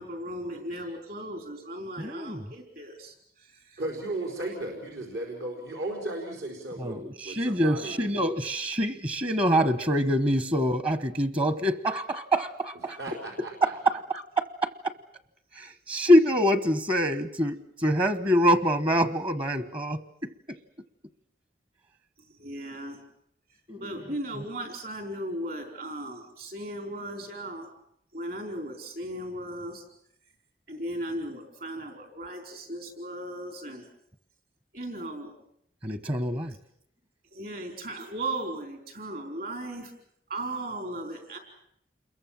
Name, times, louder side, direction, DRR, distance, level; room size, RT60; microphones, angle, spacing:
voice 1, 0.0-3.8 22.4-23.0 23.8-27.7 28.1-29.8 30.7-33.9 34.7-35.3 37.3-39.9 40.3-41.4, right 1 dB, 55° right, 5 dB, 4.5 m, -37 dB
voice 2, 2.0-2.5 6.8-13.0 13.6-14.9 15.5-20.6 23.7-24.1 35.8-36.6, equal, 30° right, 13 dB, 1.1 m, -25 dB
voice 3, 3.8-8.0 13.0-13.7, right 2 dB, 80° right, 2 dB, 4.8 m, -35 dB
28.5 x 22.5 x 7.5 m, 0.72 s
head